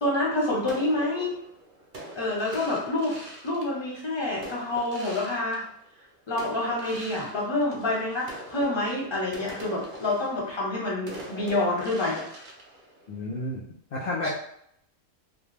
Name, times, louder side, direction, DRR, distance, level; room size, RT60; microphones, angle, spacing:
voice 1, 0.0-1.4 2.1-3.2 3.4-5.6 6.3-12.2 14.2-14.3, left 2 dB, 25° left, -4 dB, 0.7 m, -27 dB
sound 1, 0.6-6.0 6.4-13.5, right 1 dB, 55° right, 0.6 m, -43 dB
voice 2, 13.1-13.6 13.9-14.3, left 1 dB, 70° left, -5 dB, 0.4 m, -30 dB
2.3 x 2.2 x 3.1 m, 0.71 s
omnidirectional pair, 1.3 m